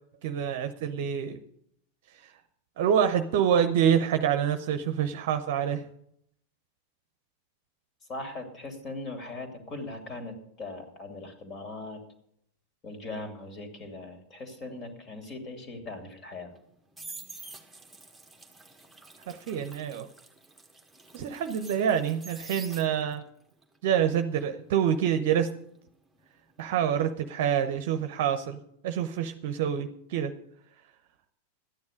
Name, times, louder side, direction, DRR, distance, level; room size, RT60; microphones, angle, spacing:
voice 1, 0.2-1.4 2.8-5.8 19.3-20.1 21.1-23.2 23.8-25.5 26.6-30.3, right 8 dB, 50° right, 9 dB, 0.8 m, -26 dB
voice 2, 8.1-12.0 12.8-16.5, left 2 dB, 30° left, 4 dB, 2.8 m, -40 dB
sound 1, 16.5-23.3 23.6-26.5 26.8-27.1, right 3 dB, 5° right, 1.5 m, -48 dB
13.5 x 9.6 x 5.2 m, 0.71 s
figure-of-eight pair, 90°, 0 cm